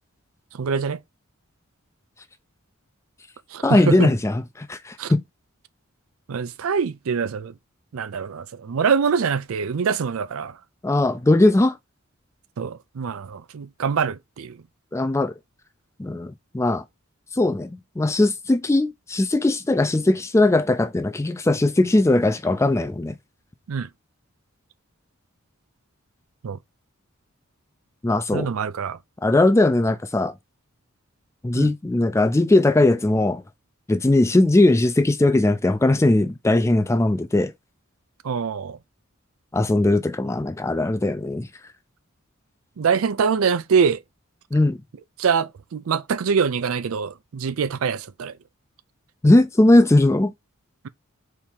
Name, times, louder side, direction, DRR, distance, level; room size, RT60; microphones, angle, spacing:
voice 1, 0.5-1.0 3.5-4.1 5.0-5.1 6.3-7.5 7.9-10.6 12.6-14.6 23.7-23.9 26.4-26.6 28.3-29.0 31.5-31.7 38.2-38.8 42.8-44.0 45.2-48.4, right 6 dB, 80° right, 0.4 m, -24 dB
voice 2, 3.6-5.2 10.8-11.8 14.9-15.3 16.0-16.8 17.4-23.2 28.0-28.5 29.2-30.3 31.4-33.4 33.9-37.5 39.5-41.5 44.5-44.8 49.2-50.3, left 2 dB, 15° left, 0.4 m, -19 dB
4.5 x 2.8 x 3.5 m
head